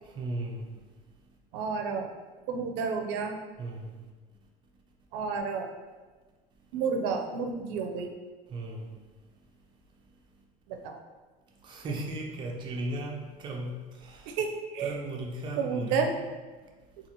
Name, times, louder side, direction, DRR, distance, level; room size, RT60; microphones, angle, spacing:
voice 1, 0.0-0.8 3.6-4.1 8.5-9.3 10.0-10.4 11.6-14.4 14.8-16.2, right 1 dB, 30° right, 0 dB, 0.6 m, -37 dB
voice 2, 1.5-2.1 2.5-3.3 5.1-5.7 6.7-8.1 10.7-11.0 14.3-15.0 15.6-16.1, right 5 dB, 75° right, 4 dB, 0.5 m, -31 dB
4.0 x 2.4 x 2.9 m, 1.3 s
cardioid pair, 150°, 16 cm